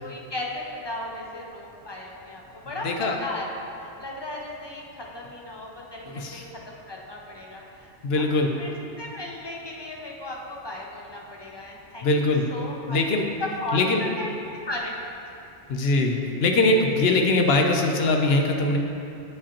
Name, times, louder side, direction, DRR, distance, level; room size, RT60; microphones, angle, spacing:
voice 1, 0.0-3.4 4.0-6.4 6.9-7.9 8.2-8.3 8.6-12.1 12.5-13.0 13.4-14.4 14.6-15.1, left 1 dB, 45° left, -2 dB, 0.3 m, -35 dB
voice 2, 2.8-3.2 6.1-6.5 8.0-8.5 12.0-12.5 12.9-13.3 13.7-14.0 15.7-18.8, left 2 dB, 65° left, 3 dB, 0.8 m, -22 dB
8.4 x 4.9 x 2.9 m, 2.7 s
omnidirectional pair, 1.2 m